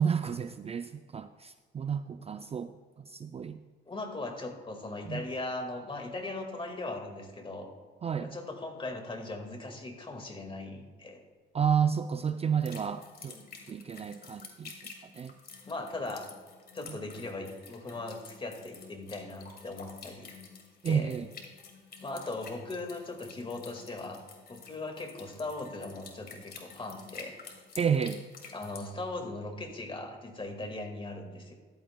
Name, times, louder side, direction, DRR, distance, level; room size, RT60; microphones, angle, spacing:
voice 1, 0.0-2.7 3.1-3.6 5.1-5.2 8.0-8.3 11.5-13.4 13.7-14.7 15.2-15.3 16.9-17.0 20.8-21.3 27.8-28.2, right 7 dB, 30° right, 10 dB, 0.4 m, -30 dB
voice 2, 3.9-7.7 8.2-11.2 13.3-13.5 15.7-16.3 16.7-20.3 20.9-21.1 22.0-27.4 28.5-31.5, left 2 dB, 25° left, 4 dB, 1.9 m, -39 dB
sound 1, 12.6-28.9, left 5 dB, 50° left, 2.1 m, -50 dB
14.5 x 11.5 x 2.3 m, 1.5 s
cardioid pair, 90°, 20 cm